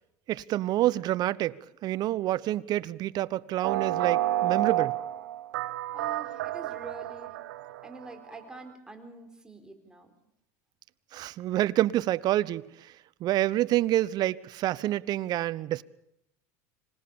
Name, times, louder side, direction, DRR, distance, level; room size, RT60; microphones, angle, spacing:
voice 1, 0.3-1.6 1.8-4.9 11.1-12.9 13.2-15.8, right 14 dB, 45° right, 0.8 m, -27 dB
sound 1, 3.6-8.1, right 13 dB, 90° right, 1.1 m, -30 dB
voice 2, 5.9-7.4 7.8-10.1, right 3 dB, 10° right, 4.2 m, -45 dB
26.0 x 18.5 x 7.0 m
supercardioid pair, 120°, 9 cm